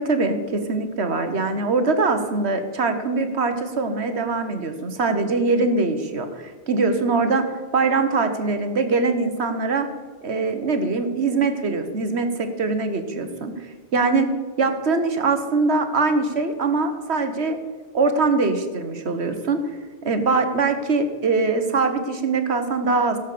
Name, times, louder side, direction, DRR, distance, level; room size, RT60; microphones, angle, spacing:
voice 1, 0.0-7.4 7.7-9.9 10.2-14.3 14.6-17.6 17.9-19.6 20.0-23.2, right 3 dB, 70° right, 8 dB, 1.5 m, -22 dB
16.5 x 7.4 x 6.8 m, 1.5 s
omnidirectional pair, 1.1 m